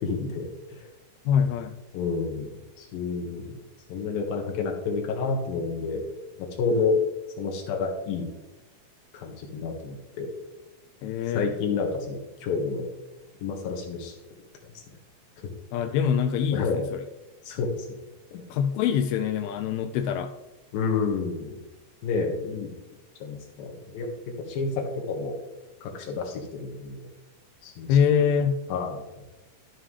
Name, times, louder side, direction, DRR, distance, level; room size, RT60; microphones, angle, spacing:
voice 1, 0.0-0.9 1.9-2.5 2.8-3.6 3.9-6.0 6.4-7.0 7.4-8.3 9.1-10.3 11.3-12.8 13.4-14.1 15.4-15.5 16.5-16.8 17.5-17.9 18.3-18.4 20.7-21.6 22.0-22.7 23.2-25.4 25.8-27.1 27.6-28.0 28.7-29.0, left 4 dB, 70° left, 2 dB, 3.2 m, -29 dB
voice 2, 1.3-1.8 11.0-11.5 15.7-17.0 18.5-20.3 27.9-28.6, left 7 dB, 90° left, 8 dB, 2.5 m, -24 dB
12.5 x 7.4 x 3.3 m, 1.0 s
omnidirectional pair, 4.4 m